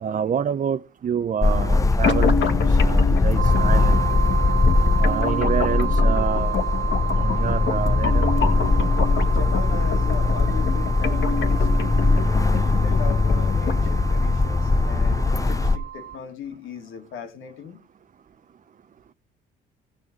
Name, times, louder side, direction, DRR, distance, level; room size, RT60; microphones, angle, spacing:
voice 1, 0.0-4.0 5.0-6.5 7.2-8.3, right 8 dB, 40° right, 0.6 m, -27 dB
sound 1, 1.4-15.8, left 3 dB, 15° left, 0.6 m, -20 dB
sound 2, 2.0-14.0, left 5 dB, 65° left, 1.9 m, -29 dB
sound 3, 3.4-16.2, right 11 dB, 80° right, 0.6 m, -32 dB
voice 2, 9.3-11.7 12.6-17.8, left 6 dB, 85° left, 2.2 m, -37 dB
17.0 x 6.3 x 4.8 m
cardioid pair, 90°, 20 cm